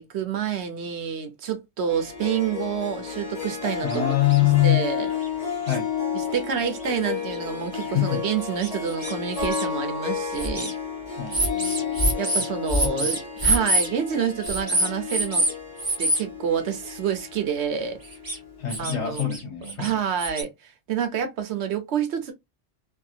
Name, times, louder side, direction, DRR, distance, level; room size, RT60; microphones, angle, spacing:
voice 1, 0.0-4.1 4.4-5.1 6.1-10.7 12.2-15.5 16.0-18.0 18.8-19.4 19.8-22.3, right 8 dB, 70° right, 1.0 m, -28 dB
Harp, 1.9-18.7, left 6 dB, 35° left, 1.4 m, -32 dB
voice 2, 3.8-4.9 5.6-5.9 7.8-8.2 11.2-12.1 12.8-12.9 18.6-20.0, left 14 dB, 75° left, 1.1 m, -24 dB
sound 1, 3.9-4.0 4.3-4.4 5.2-5.3 5.7-5.8 6.3-6.4 7.3-7.4 7.8-7.9 8.6-9.7 10.3-10.7 11.3-13.9 14.4-15.5 15.8-16.2 18.1-18.4 18.7-19.4 19.7-20.4, right 1 dB, 20° right, 0.8 m, -25 dB
2.7 x 2.6 x 2.4 m
omnidirectional pair, 1.2 m